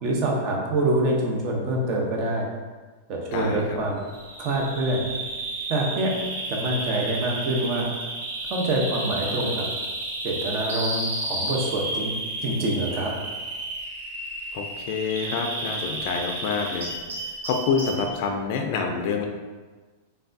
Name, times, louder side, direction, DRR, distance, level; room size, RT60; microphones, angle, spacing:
voice 1, 0.0-2.5 3.1-4.0 4.4-5.1 5.7-6.1 6.5-7.9 8.5-9.6 10.2-12.1 12.4-13.1, right 1 dB, 40° right, -1 dB, 0.6 m, -25 dB
voice 2, 3.3-3.8 14.5-16.9 17.2-19.2, left 5 dB, 50° left, 3 dB, 0.4 m, -27 dB
Bird vocalization bird call bird song, 4.1-18.1, right 2 dB, 85° right, 0.7 m, -32 dB
3.3 x 2.2 x 2.6 m, 1.3 s
hypercardioid pair, 135°, 0 cm